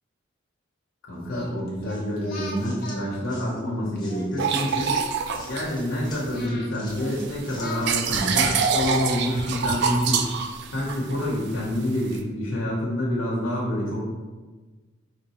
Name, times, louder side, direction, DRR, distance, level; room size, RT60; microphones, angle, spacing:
voice 1, 1.1-4.9 5.5-10.3 10.7-14.0, left 1 dB, 80° left, -6 dB, 0.9 m, -27 dB
Singing, 1.2-4.3 4.7-7.2 7.5-10.1, left 2 dB, 50° left, 1.0 m, -41 dB
sound 1, 1.9-11.0, left 2 dB, 20° left, 0.9 m, -49 dB
sound 2, 4.4-6.5 6.9-12.2, right 6 dB, 55° right, 0.4 m, -26 dB
5.1 x 3.1 x 3.0 m, 1.3 s
head